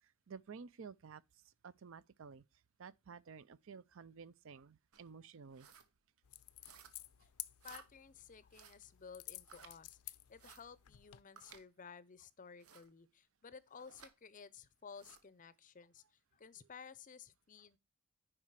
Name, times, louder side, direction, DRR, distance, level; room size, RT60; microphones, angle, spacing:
voice 1, 0.0-2.4 2.8-5.7 16.6-16.7, right 5 dB, 60° right, 0.5 m, -53 dB
sound 1, 4.9-5.1 5.5-5.9 6.6-7.1 7.6-7.9 8.5-8.8 9.4-9.7 10.4-10.6 11.4-11.6 12.6-12.9 13.8-14.1 14.9-15.2, right 6 dB, 80° right, 1.2 m, -58 dB
sound 2, 6.2-11.2, left 16 dB, 85° left, 0.5 m, -53 dB
voice 2, 7.6-16.0 16.3-17.8, left 6 dB, 35° left, 0.5 m, -55 dB
9.8 x 5.0 x 4.7 m
head